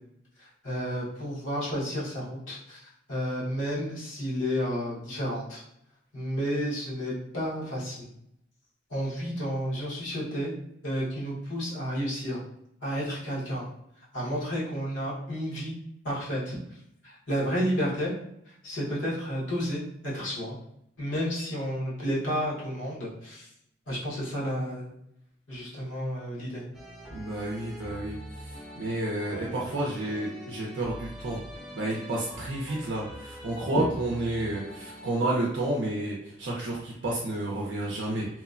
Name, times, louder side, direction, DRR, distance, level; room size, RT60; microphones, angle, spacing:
voice 1, 0.4-2.8 3.1-5.6 6.1-8.1 8.9-10.5 10.8-12.4 12.8-13.7 14.1-15.8 16.0-16.6 17.0-18.1 18.6-20.6 21.0-23.5 23.9-24.9 25.5-26.6, equal, 75° left, -7 dB, 1.1 m, -31 dB
sound 1, 26.7-35.1, equal, ahead, 0.4 m, -43 dB
voice 2, 27.1-31.4 31.7-38.3, right 1 dB, 70° right, -3 dB, 0.5 m, -31 dB
3.0 x 2.1 x 2.4 m, 0.77 s
head